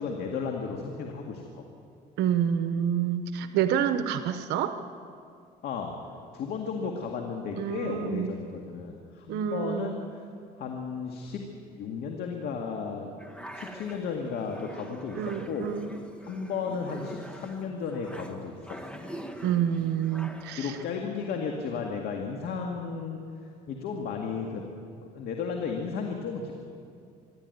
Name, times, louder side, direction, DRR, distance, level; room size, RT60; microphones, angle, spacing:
voice 1, 0.0-1.7 5.6-5.9 6.3-10.0 10.6-11.4 11.7-13.1 13.5-15.7 16.2-19.0 20.6-23.2 23.7-24.7 25.0-26.6, left 5 dB, 70° left, 2 dB, 2.1 m, -34 dB
voice 2, 2.2-4.8 7.6-8.3 9.3-10.0 15.1-15.9 19.4-20.8, right 9 dB, 85° right, 9 dB, 1.0 m, -28 dB
sound 1, 13.2-20.9, equal, 5° left, 1.7 m, -44 dB
26.0 x 11.5 x 9.4 m, 2.3 s
cardioid pair, 110°, 17 cm